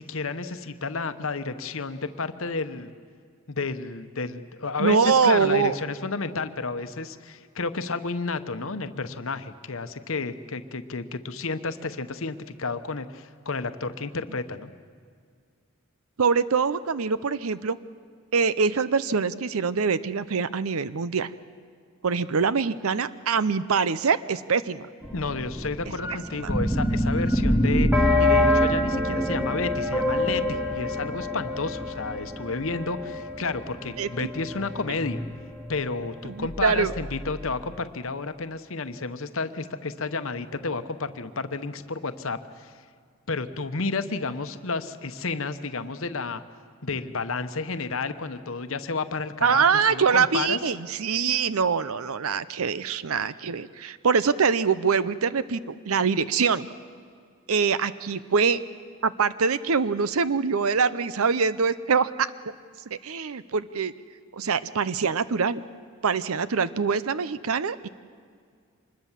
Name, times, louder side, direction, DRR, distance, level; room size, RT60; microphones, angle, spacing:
voice 1, 0.0-2.9 3.5-14.7 25.1-35.2 35.7-42.7 43.3-46.4 46.8-50.6, left 3 dB, 65° left, 10 dB, 1.0 m, -31 dB
voice 2, 4.8-5.8 16.2-17.8 18.3-21.3 22.0-24.9 34.0-34.1 36.2-36.9 49.4-56.7 57.5-58.6 59.0-62.3 62.9-63.9 64.3-65.6 66.0-67.9, right 5 dB, 75° right, 15 dB, 0.6 m, -24 dB
sound 1, 25.0-35.3 35.6-35.7 35.9-36.0 36.5-37.4, left 1 dB, 5° right, 2.0 m, -26 dB
25.5 x 21.0 x 7.4 m, 2.1 s
head